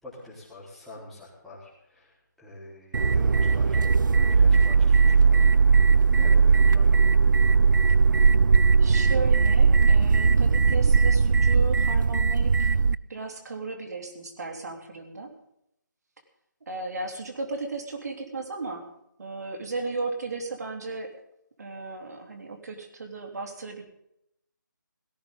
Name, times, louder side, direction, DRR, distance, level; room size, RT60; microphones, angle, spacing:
voice 1, 0.0-3.9 4.2-5.5 6.2-7.0, left 1 dB, ahead, -9 dB, 4.2 m, -45 dB
sound 1, 2.9-13.0, right 5 dB, 70° right, 0.4 m, -19 dB
voice 2, 6.7-7.3 8.8-12.8 13.1-15.4 16.7-18.9 19.2-21.1 21.6-23.8, right 3 dB, 55° right, 3 dB, 3.6 m, -35 dB
17.5 x 15.5 x 3.9 m, 0.78 s
figure-of-eight pair, 165°, 11 cm